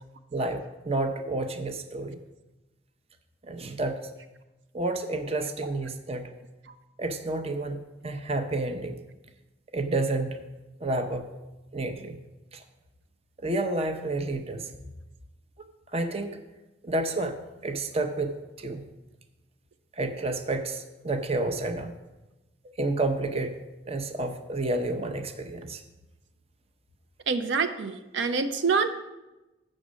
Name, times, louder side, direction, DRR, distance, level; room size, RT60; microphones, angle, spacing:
voice 1, 0.3-2.2 3.5-4.1 4.7-6.3 7.0-7.8 8.0-9.0 9.7-10.4 10.8-11.4 11.7-12.2 12.5-12.6 13.4-14.7 15.9-16.3 16.8-17.4 17.6-18.3 18.6-18.8 20.0-21.9 22.8-23.6 23.9-25.8, right 2 dB, 35° right, 7 dB, 0.6 m, -30 dB
voice 2, 27.3-28.9, right 5 dB, 75° right, 9 dB, 0.5 m, -26 dB
8.2 x 6.4 x 6.2 m, 1.1 s
head